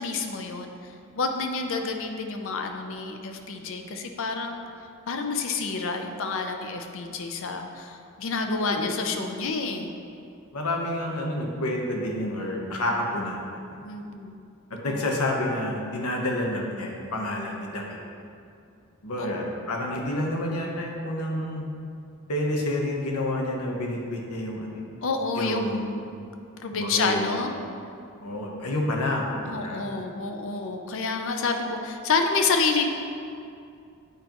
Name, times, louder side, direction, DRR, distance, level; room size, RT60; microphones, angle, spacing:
voice 1, 0.0-4.6 5.1-9.9 13.8-14.4 14.9-15.0 19.2-19.5 25.0-26.2 26.6-27.5 29.4-32.9, left 4 dB, 60° left, 5 dB, 0.5 m, -29 dB
voice 2, 8.5-8.9 10.5-13.6 14.7-18.0 19.0-21.7 22.3-24.8 25.3-26.0 26.7-27.5 28.2-30.0, left 1 dB, 85° left, -1 dB, 1.0 m, -29 dB
8.2 x 5.2 x 3.0 m, 2.5 s
head